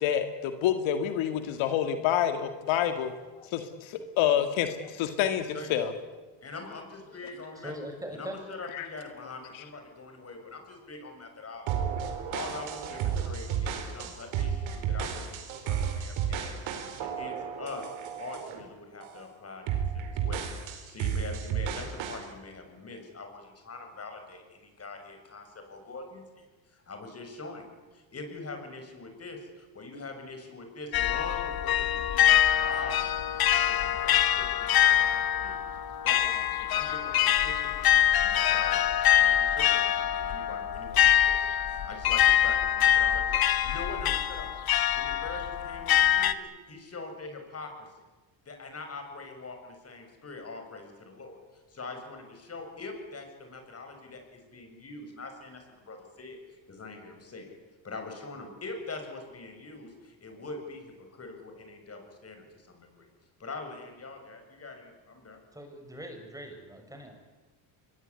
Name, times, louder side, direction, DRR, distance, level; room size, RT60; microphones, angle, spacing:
voice 1, 0.0-3.1 3.4-5.9 8.7-8.9, left 10 dB, 80° left, 8 dB, 2.3 m, -28 dB
voice 2, 6.4-7.7 8.1-11.7 12.3-16.6 17.0-17.9 18.2-27.7 27.9-33.2 33.5-35.6 36.0-37.9 38.2-44.5 44.9-47.9 48.5-57.6 57.8-63.1 63.4-65.4, left 3 dB, 30° left, 5 dB, 7.1 m, -43 dB
voice 3, 7.6-8.4 65.5-67.1, equal, 5° right, 4 dB, 6.4 m, -41 dB
sound 1, 11.7-18.6 19.0-19.3 19.7-22.3, right 8 dB, 80° right, 4.7 m, -32 dB
sound 2, 30.9-46.3, left 11 dB, 50° left, 1.6 m, -24 dB
24.0 x 21.5 x 9.9 m, 1.2 s
cardioid pair, 110°, 46 cm